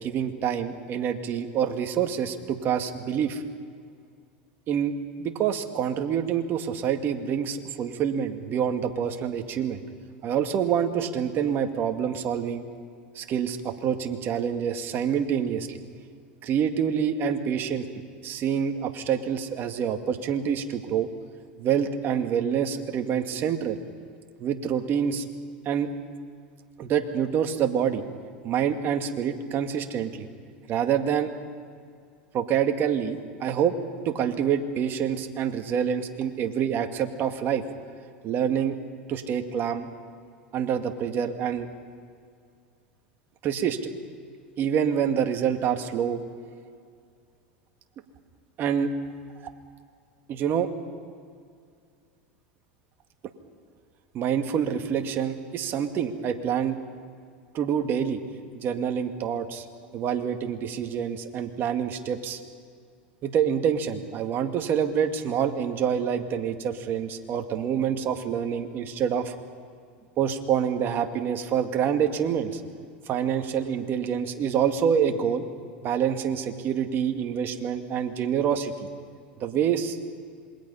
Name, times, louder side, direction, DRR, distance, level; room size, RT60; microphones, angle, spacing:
voice 1, 0.0-3.4 4.7-9.8 10.2-12.7 13.2-15.8 16.4-17.9 18.2-21.1 21.6-23.8 24.4-25.2 25.7-25.9 26.8-28.0 28.4-30.3 30.7-31.3 32.3-33.8 34.1-37.6 38.2-38.8 39.1-39.9 40.5-41.7 43.4-43.8 44.6-46.2 48.6-48.9 50.3-50.7 54.1-56.8 57.5-58.2 58.5-59.6 59.9-62.4 63.2-69.4 70.2-72.6 73.1-75.4 75.8-78.9 79.4-80.0, right 8 dB, 45° right, 6 dB, 2.0 m, -26 dB
27.0 x 21.5 x 5.6 m, 2.2 s
hypercardioid pair, 105°, 5 cm